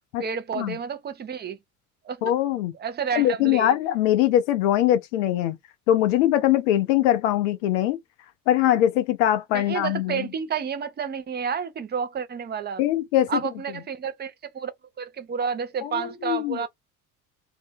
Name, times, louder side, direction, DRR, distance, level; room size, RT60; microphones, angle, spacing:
voice 1, 0.2-1.6 2.0-2.2 2.8-3.7 9.5-12.8 13.3-14.7 15.0-16.7, right 6 dB, 25° right, 0.7 m, -30 dB
voice 2, 2.2-2.7 3.1-5.6 5.9-8.0 8.5-10.3 12.8-13.4 15.8-16.7, left 12 dB, 55° left, 0.6 m, -22 dB
2.7 x 2.7 x 3.4 m
figure-of-eight pair, 60°, 44 cm